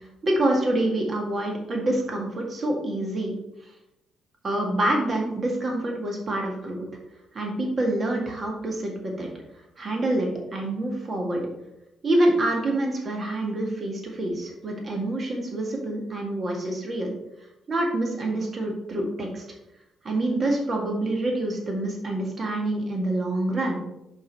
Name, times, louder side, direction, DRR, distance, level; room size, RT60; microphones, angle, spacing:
voice 1, 0.2-3.3 4.4-6.9 7.3-9.3 9.8-11.4 12.0-17.1 17.7-19.4 20.0-23.8, right 1 dB, 40° right, 0 dB, 1.9 m, -26 dB
5.4 x 5.2 x 5.3 m, 0.89 s
cardioid pair, 90°, 0 cm